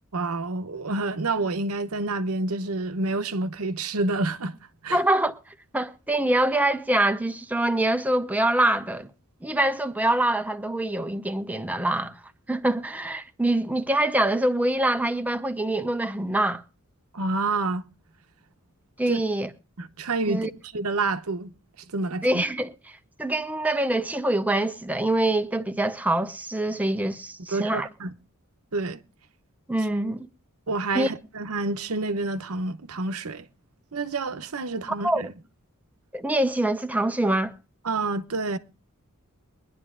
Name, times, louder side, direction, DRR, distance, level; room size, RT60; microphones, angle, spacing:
voice 1, 0.1-4.5 4.8-5.0 17.1-17.8 19.1-19.2 19.8-20.5 20.7-21.5 21.9-22.4 27.5-28.1 28.7-29.0 30.7-33.5 33.9-35.3 37.8-38.6, right 3 dB, 85° right, 0.9 m, -28 dB
voice 2, 4.9-5.3 5.7-9.1 9.4-12.1 12.5-16.6 19.0-19.5 20.3-20.5 22.2-22.7 23.2-27.9 29.7-30.3 30.9-31.1 35.0-35.2 36.1-37.5, right 1 dB, 5° right, 0.8 m, -24 dB
22.5 x 11.0 x 2.5 m
head